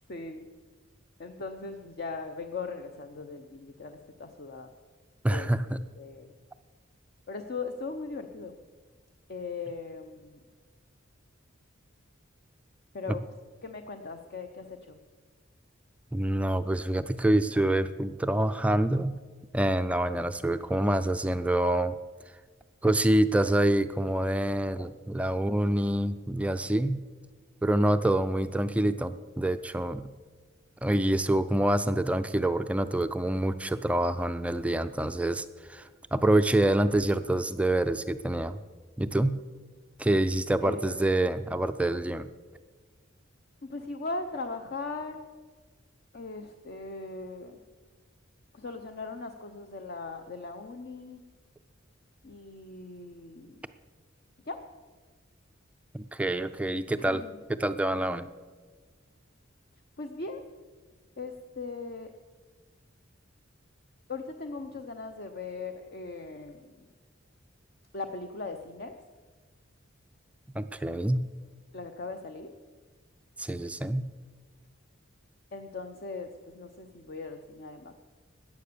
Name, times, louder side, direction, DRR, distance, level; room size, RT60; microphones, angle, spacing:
voice 1, 0.1-0.5 1.2-4.7 5.3-5.5 6.0-6.3 7.3-8.6 9.3-10.4 12.9-13.2 13.6-15.0 40.6-41.1 43.6-45.2 46.1-47.6 48.5-51.2 52.2-53.6 54.5-54.6 57.0-57.3 60.0-60.4 61.2-62.1 64.1-66.7 67.9-68.9 71.7-72.5 75.5-76.3 76.5-78.0, left 3 dB, 50° left, 6 dB, 0.7 m, -39 dB
voice 2, 5.2-5.8 13.1-13.2 16.1-19.2 19.5-22.0 22.8-27.0 27.6-30.1 30.8-38.6 39.0-39.4 40.0-42.3 55.9-57.2 57.5-58.3 70.5-71.2 73.4-74.1, right 1 dB, 5° right, 10 dB, 0.3 m, -26 dB
14.0 x 9.4 x 6.7 m, 1.4 s
head